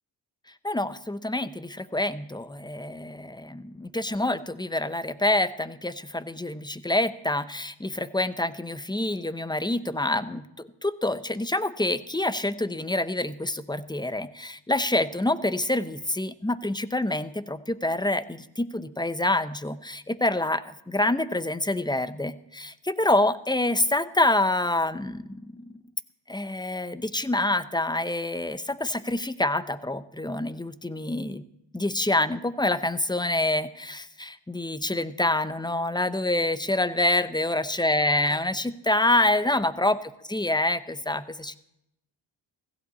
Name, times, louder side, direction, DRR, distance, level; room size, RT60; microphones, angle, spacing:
voice 1, 0.6-25.8 26.3-31.4 31.7-41.6, left 1 dB, 10° left, 13 dB, 0.9 m, -27 dB
16.0 x 15.0 x 4.2 m, 0.82 s
supercardioid pair, 45°, 49 cm